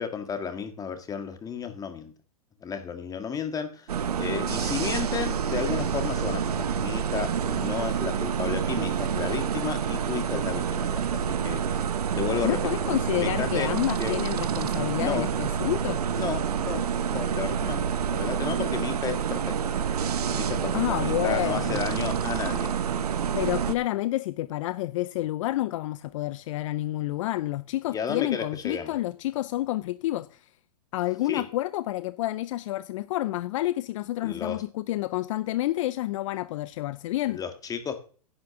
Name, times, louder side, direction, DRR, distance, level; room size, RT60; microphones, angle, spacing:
voice 1, 0.0-2.1 2.6-3.9 4.2-12.6 13.2-13.7 14.0-14.2 15.0-15.3 16.2-16.8 17.1-17.8 18.1-19.6 20.4-22.7 27.9-28.9 31.3-31.4 34.2-34.6 37.3-37.9, left 7 dB, 20° left, 1.8 m, -33 dB
sound 1, 3.9-23.7, right 7 dB, 80° right, 1.1 m, -28 dB
voice 2, 12.4-16.0 20.7-21.9 23.3-30.5 30.9-37.4, left 16 dB, 55° left, 0.6 m, -29 dB
10.5 x 5.9 x 7.0 m
hypercardioid pair, 120°, 19 cm